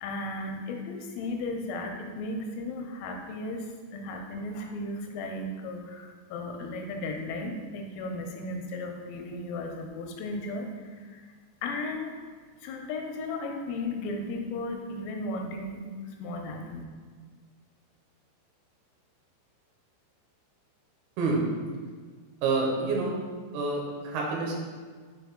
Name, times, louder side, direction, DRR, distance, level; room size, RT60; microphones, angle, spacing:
voice 1, 0.0-11.2 11.6-12.1 12.6-16.8, left 2 dB, 90° left, 3 dB, 3.4 m, -35 dB
voice 2, 22.4-23.1 23.5-24.5, right 3 dB, 75° right, -2 dB, 2.6 m, -27 dB
6.9 x 4.2 x 3.6 m, 1.5 s
omnidirectional pair, 5.7 m